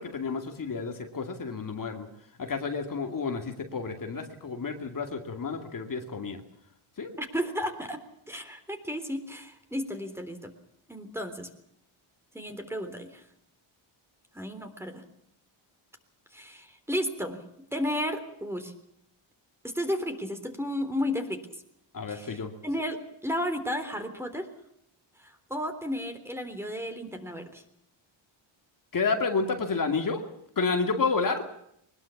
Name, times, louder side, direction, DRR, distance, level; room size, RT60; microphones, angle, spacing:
voice 1, 0.0-2.1 2.4-6.4 7.0-7.1 21.9-22.5 28.9-30.2 30.6-31.4, left 4 dB, 40° left, 4 dB, 2.5 m, -30 dB
voice 2, 7.2-8.0 8.3-10.5 10.9-11.5 12.3-13.2 14.3-15.0 16.3-17.4 17.7-18.7 19.6-21.4 22.1-24.5 25.2-27.6, equal, 5° right, 7 dB, 3.6 m, -33 dB
22.5 x 21.0 x 7.2 m, 0.74 s
cardioid pair, 135°, 49 cm